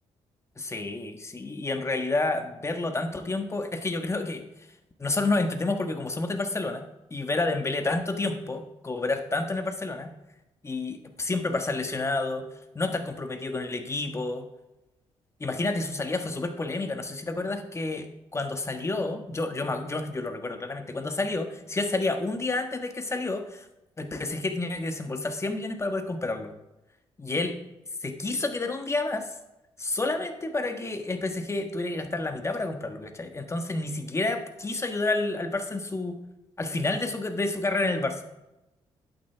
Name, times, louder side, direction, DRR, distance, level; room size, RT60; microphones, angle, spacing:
voice 1, 0.6-4.4 5.0-10.1 10.6-12.4 12.7-14.4 15.4-23.7 24.0-26.5 27.2-27.6 28.0-29.3 29.8-36.2 36.6-38.2, left 2 dB, 25° left, 6 dB, 1.4 m, -29 dB
11.0 x 8.8 x 3.5 m, 0.92 s
cardioid pair, 80°, 12 cm